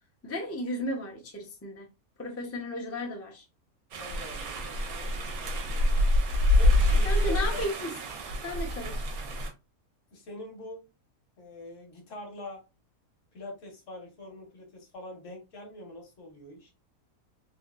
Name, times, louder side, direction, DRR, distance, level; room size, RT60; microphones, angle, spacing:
voice 1, 0.2-1.9 2.2-3.4 7.0-7.9 8.4-9.1, left 1 dB, 25° left, 0.3 m, -34 dB
sound 1, 3.9-9.5, left 1 dB, 75° right, 1.2 m, -26 dB
voice 2, 4.0-6.1 6.6-7.7 10.1-10.9 11.4-12.6 13.3-16.7, left 2 dB, 60° left, 1.2 m, -45 dB
3.5 x 2.6 x 2.3 m
omnidirectional pair, 1.6 m